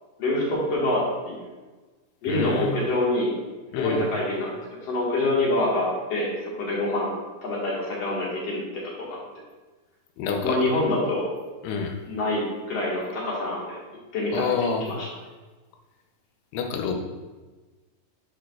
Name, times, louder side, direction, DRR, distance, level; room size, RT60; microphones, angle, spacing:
voice 1, 0.2-1.4 2.2-3.3 3.8-4.5 4.8-6.3 6.6-7.1 7.4-9.2 10.4-11.3 12.0-13.8 14.1-14.4 14.8-15.1, left 2 dB, 50° left, -5 dB, 2.2 m, -26 dB
voice 2, 2.3-2.8 3.7-4.0 10.2-10.6 11.6-11.9 14.3-14.8 16.5-17.0, left 5 dB, 85° left, 3 dB, 2.9 m, -27 dB
11.0 x 6.0 x 2.4 m, 1.3 s
omnidirectional pair, 4.8 m